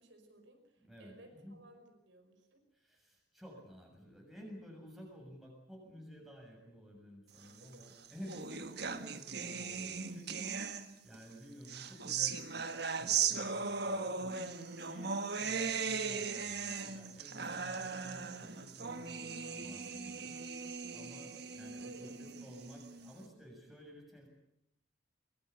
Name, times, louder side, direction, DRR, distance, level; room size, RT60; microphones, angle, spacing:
voice 1, 0.0-2.6 7.6-7.9 21.8-22.4, right 1 dB, 70° right, 4 dB, 5.1 m, -58 dB
voice 2, 0.8-1.6 2.7-10.5 11.0-14.5 14.8-20.4 20.9-24.3, equal, ahead, 0 dB, 6.8 m, -53 dB
sound 1, 7.7-11.2 11.6-23.1, right 5 dB, 55° right, 1.6 m, -38 dB
23.5 x 22.5 x 8.2 m, 0.78 s
head